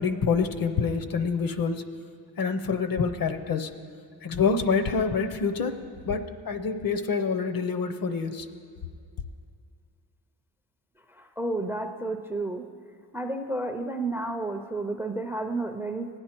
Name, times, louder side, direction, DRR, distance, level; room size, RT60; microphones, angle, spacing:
voice 1, 0.0-1.8 2.4-3.7 4.2-5.8 6.1-8.4, left 5 dB, 55° left, 9 dB, 0.7 m, -26 dB
voice 2, 11.1-12.6 13.1-16.1, right 2 dB, 5° right, 6 dB, 0.4 m, -31 dB
17.0 x 9.8 x 4.4 m, 2.2 s
wide cardioid pair, 145°, 43 cm